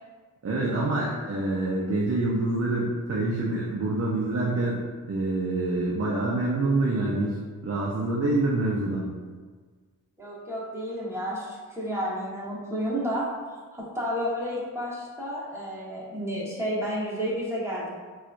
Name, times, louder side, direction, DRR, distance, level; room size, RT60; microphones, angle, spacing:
voice 1, 0.4-4.8 5.1-7.4 7.6-9.1, right 2 dB, 40° right, -4 dB, 0.6 m, -26 dB
voice 2, 10.2-13.3 13.7-18.0, equal, 5° right, -7 dB, 1.3 m, -31 dB
4.0 x 2.4 x 2.5 m, 1.5 s
cardioid pair, 55°, 38 cm